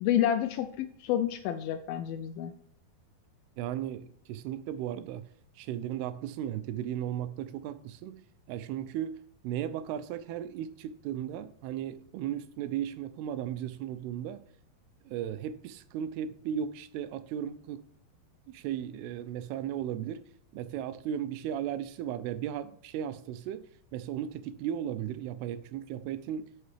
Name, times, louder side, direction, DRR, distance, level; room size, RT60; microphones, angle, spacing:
voice 1, 0.0-2.5, left 11 dB, 85° left, 2.1 m, -29 dB
voice 2, 3.6-5.3 5.6-9.2 9.4-14.4 15.1-17.9 18.5-20.2 20.5-23.6 23.9-26.5, right 10 dB, 85° right, 2.6 m, -36 dB
11.0 x 5.9 x 3.3 m
omnidirectional pair, 4.5 m